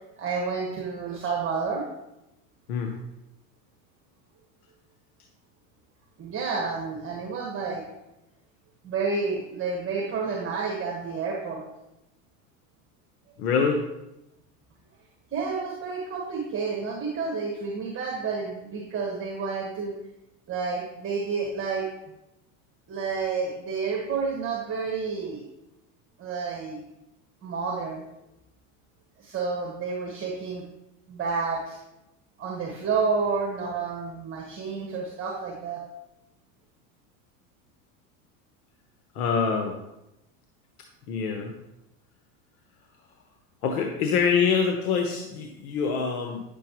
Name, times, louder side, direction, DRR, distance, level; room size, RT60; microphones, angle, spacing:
voice 1, 0.2-1.8 6.2-7.8 8.8-11.6 15.3-20.0 20.5-21.9 22.9-25.4 26.2-26.8 27.4-28.0 29.2-30.6 31.1-31.8 32.4-35.8, right 4 dB, 30° right, -1 dB, 1.6 m, -30 dB
voice 2, 13.4-13.8 39.1-39.8 41.1-41.5 43.6-46.4, left 6 dB, 85° left, 2 dB, 1.1 m, -25 dB
9.7 x 6.7 x 3.1 m, 0.90 s
supercardioid pair, 110°, 43 cm